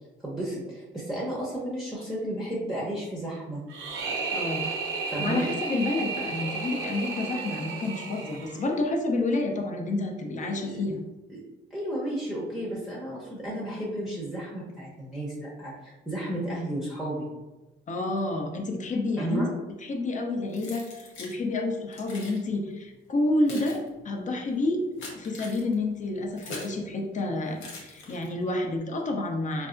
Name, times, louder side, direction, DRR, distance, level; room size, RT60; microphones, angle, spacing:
voice 1, 0.2-3.6 5.1-5.5 10.4-10.8 11.3-11.4 11.7-17.3 19.2-19.5, right 1 dB, ahead, -6 dB, 0.8 m, -33 dB
sound 1, 3.7-8.8, right 4 dB, 85° right, 0.6 m, -33 dB
voice 2, 4.3-4.7 5.2-11.0 17.9-19.4 19.8-29.7, left 2 dB, 40° left, 3 dB, 0.6 m, -29 dB
Keys jangling, 20.5-21.4 21.9-22.4 23.1-26.8 27.6-28.5, left 2 dB, 90° left, 0.8 m, -42 dB
3.9 x 2.3 x 2.5 m, 1.1 s
cardioid pair, 90°, 20 cm